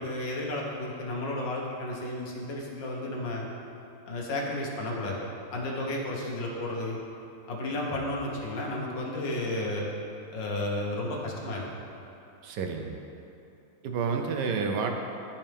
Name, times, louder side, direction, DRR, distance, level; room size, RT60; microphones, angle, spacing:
voice 1, 0.0-3.5 4.1-5.2 5.5-7.0 7.5-9.9 10.3-11.7, left 1 dB, 60° left, -2 dB, 1.8 m, -32 dB
voice 2, 12.4-13.0 13.8-14.9, right 5 dB, 70° right, 4 dB, 1.1 m, -29 dB
13.5 x 5.6 x 3.5 m, 2.8 s
omnidirectional pair, 2.3 m